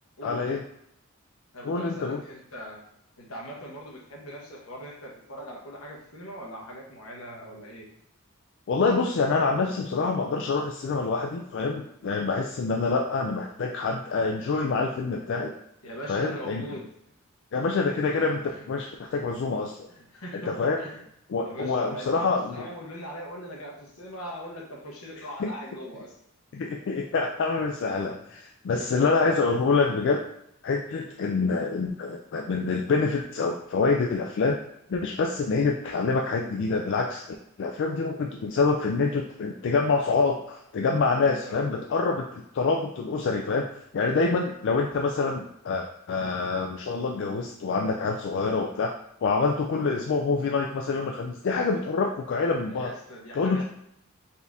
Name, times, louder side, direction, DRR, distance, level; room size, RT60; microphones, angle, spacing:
voice 1, 0.2-0.6 1.6-2.2 8.7-15.5 16.1-16.6 17.5-19.8 20.3-20.8 21.3-22.6 25.4-25.5 26.5-30.2 30.6-34.6 34.9-37.2 37.6-43.7 43.9-48.9 49.2-52.9 53.3-53.6, left 4 dB, 55° left, 1 dB, 0.3 m, -26 dB
voice 2, 1.5-2.8 3.2-7.9 15.8-16.9 18.5-18.7 19.1-19.2 19.9-21.0 21.4-26.1 28.1-28.2 28.7-29.1 30.9-31.1 41.2-41.7 52.6-53.6, equal, 80° left, -1 dB, 1.1 m, -41 dB
4.2 x 2.7 x 3.5 m, 0.77 s
head